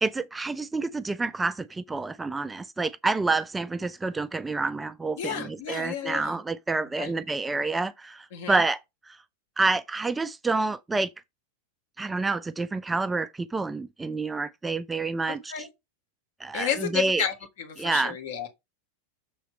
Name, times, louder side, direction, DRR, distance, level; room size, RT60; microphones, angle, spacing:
voice 1, 0.0-8.8 9.1-9.2 9.6-11.1 12.0-15.7 16.4-17.2 17.8-18.1, right 3 dB, 10° right, 0.4 m, -28 dB
voice 2, 5.2-6.4 7.0-7.1 8.3-8.6 15.3-15.7 16.5-18.5, left 8 dB, 55° left, 2.2 m, -32 dB
6.9 x 4.2 x 5.3 m
figure-of-eight pair, 90°, 0 cm